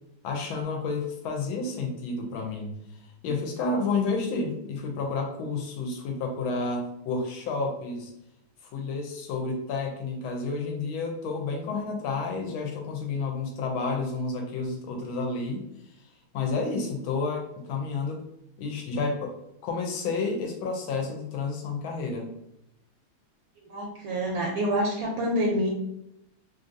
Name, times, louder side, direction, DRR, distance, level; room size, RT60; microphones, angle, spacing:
voice 1, 0.2-2.7 3.2-8.1 8.7-15.6 16.3-18.2 18.6-19.3 19.6-22.3, left 3 dB, 75° left, 1 dB, 1.3 m, -30 dB
voice 2, 23.7-25.7, equal, 75° right, -2 dB, 1.2 m, -27 dB
3.3 x 2.6 x 2.5 m, 0.82 s
omnidirectional pair, 2.4 m